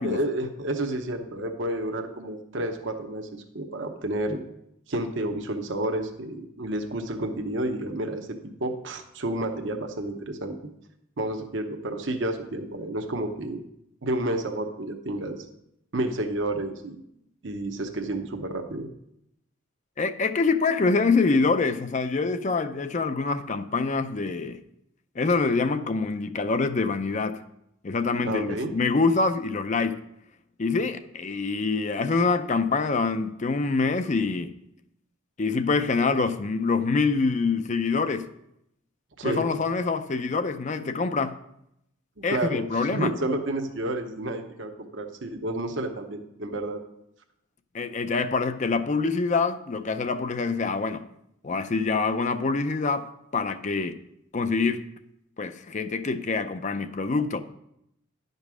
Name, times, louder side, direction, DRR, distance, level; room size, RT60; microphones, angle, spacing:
voice 1, 0.0-4.4 4.9-8.3 8.6-10.5 11.2-13.6 14.0-15.5 15.9-17.0 17.4-18.9 28.2-28.7 39.2-39.6 42.2-46.8, right 1 dB, 60° right, 0.9 m, -30 dB
voice 2, 20.0-24.6 25.2-27.4 27.8-30.0 30.6-34.5 35.4-38.3 39.2-41.4 42.2-43.1 47.7-51.1 51.4-53.1 53.3-54.0 54.3-54.8 55.4-57.4, left 4 dB, 35° left, 0.5 m, -25 dB
11.0 x 5.3 x 6.1 m
head